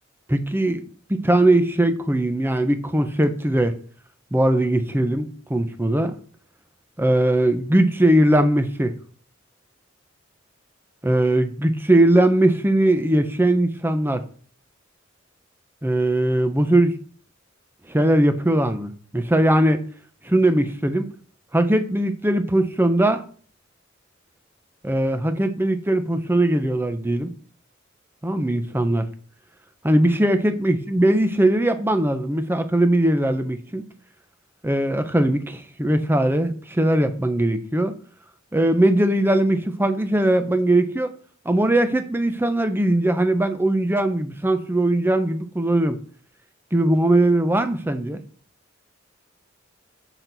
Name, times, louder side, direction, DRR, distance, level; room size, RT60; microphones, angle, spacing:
voice 1, 0.3-0.8 1.1-3.7 4.3-6.1 7.0-8.9 11.0-14.2 15.8-16.9 17.9-19.8 20.2-21.1 21.5-23.2 24.8-27.3 28.2-29.1 29.8-33.9 34.6-37.9 38.5-41.1 41.4-46.0 46.7-48.2, right 1 dB, 10° right, 0.7 m, -20 dB
6.7 x 5.9 x 4.0 m
head